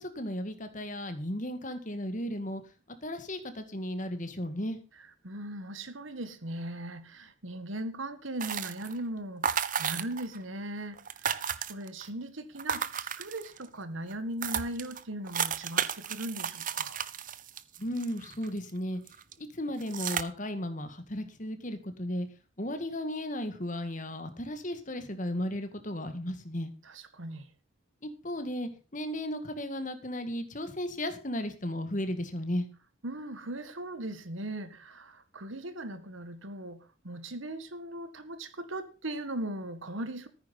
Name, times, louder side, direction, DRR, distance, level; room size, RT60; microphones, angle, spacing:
voice 1, 0.0-2.6 3.0-4.8 17.8-19.0 19.4-22.3 22.6-26.7 28.0-32.7, left 1 dB, 40° left, 2.1 m, -35 dB
voice 2, 5.0-17.0 26.8-27.5 33.0-40.3, right 1 dB, 75° right, 1.8 m, -39 dB
sound 1, 8.4-9.0 9.4-10.4 10.6-10.7 10.9-12.1 12.6-13.7 14.1-14.2 14.4-18.7 19.1-19.3 19.8-20.2, right 8 dB, 40° right, 0.8 m, -33 dB
14.5 x 9.6 x 5.6 m
head